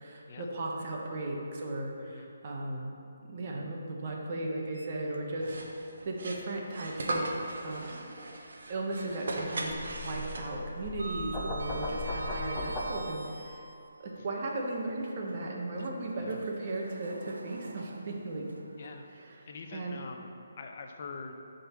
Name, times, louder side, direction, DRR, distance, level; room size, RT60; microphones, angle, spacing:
voice 1, 0.0-2.9 3.2-8.0 8.7-13.7 14.0-18.7 19.3-20.0, right 2 dB, 40° right, -1 dB, 1.2 m, -36 dB
Sliding door, 4.7-5.6 6.0-6.1 7.8-8.9 9.2-9.5 9.8-13.9 14.6-19.8, right 3 dB, 90° right, 0.6 m, -46 dB
sound 1, 5.4-10.8, right 2 dB, 65° right, 1.0 m, -38 dB
sound 2, 9.8-12.9, left 1 dB, 15° left, 0.8 m, -37 dB
voice 2, 18.8-19.1 19.5-21.3, left 4 dB, 45° left, 3 dB, 0.7 m, -44 dB
11.0 x 4.0 x 4.6 m, 2.6 s
hypercardioid pair, 155°, 0 cm